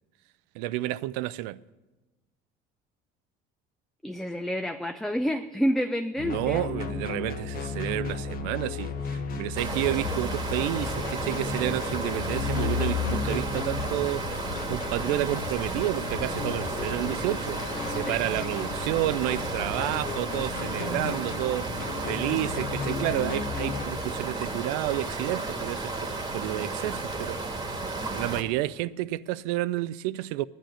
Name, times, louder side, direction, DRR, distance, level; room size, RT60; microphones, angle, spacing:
voice 1, 0.5-1.6 6.2-14.3 14.7-21.7 22.0-27.5 28.1-30.4, right 16 dB, 85° right, 0.4 m, -30 dB
voice 2, 4.0-6.7 18.1-18.5, equal, ahead, 0.4 m, -29 dB
sound 1, 6.2-23.8, left 5 dB, 45° left, 1.1 m, -34 dB
sound 2, 9.6-28.4, right 3 dB, 20° right, 1.5 m, -33 dB
sound 3, 9.8-10.2 10.5-11.4 11.7-12.1 12.4-13.2 13.5-13.9 14.2-15.1 15.4-15.8 16.1-17.2, left 3 dB, 80° left, 1.0 m, -41 dB
9.8 x 9.2 x 7.6 m
supercardioid pair, 105°, 21 cm